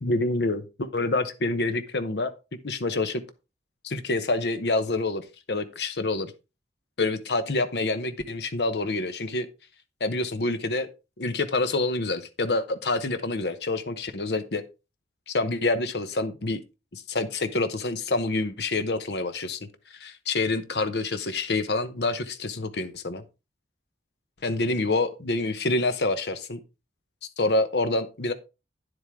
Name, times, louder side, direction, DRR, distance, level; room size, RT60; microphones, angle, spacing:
voice 1, 0.0-2.3 2.6-3.2 3.8-6.3 7.0-9.5 10.0-10.9 11.2-14.6 15.3-16.6 16.9-19.6 19.9-23.2 24.4-26.6 27.4-28.3, left 2 dB, 65° left, 10 dB, 0.9 m, -27 dB
10.0 x 7.9 x 3.6 m, 0.28 s
head